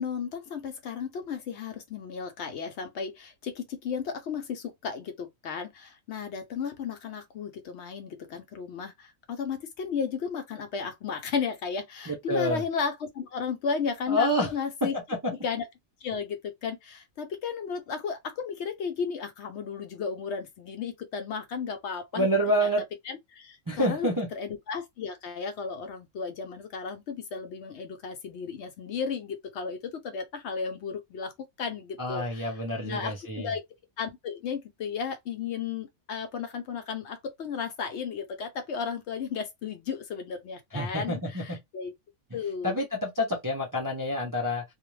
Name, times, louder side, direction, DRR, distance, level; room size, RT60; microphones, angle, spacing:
voice 1, 0.0-15.0 15.4-15.7 16.0-22.3 22.6-22.7 23.1-31.3 31.6-33.6 34.0-41.9 42.3-42.8, left 6 dB, 65° left, 0.8 m, -34 dB
voice 2, 12.1-12.6 14.1-14.5 22.1-22.8 23.7-24.3 32.0-33.5 40.7-41.6 42.6-44.6, equal, 30° right, 0.4 m, -28 dB
2.4 x 2.1 x 3.1 m
omnidirectional pair, 1.4 m